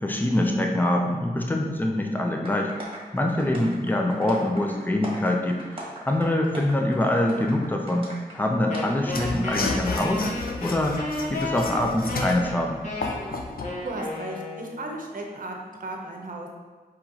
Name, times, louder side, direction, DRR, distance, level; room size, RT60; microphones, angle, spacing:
voice 1, 0.0-2.7 3.1-10.3 10.6-11.0 11.3-12.8, left 1 dB, 10° left, 1 dB, 0.6 m, -24 dB
sound 1, 2.4-8.4 8.7-8.8, right 1 dB, 35° right, 1.3 m, -40 dB
Wind instrument woodwind instrument, 8.7-15.0, left 2 dB, 45° left, 1.2 m, -33 dB
Mechanisms / Sawing, 9.0-13.8, left 3 dB, 65° left, 0.5 m, -32 dB
voice 2, 13.8-16.5, right 2 dB, 55° right, 1 dB, 0.8 m, -35 dB
4.6 x 3.0 x 3.7 m, 1.4 s
wide cardioid pair, 65°, 16 cm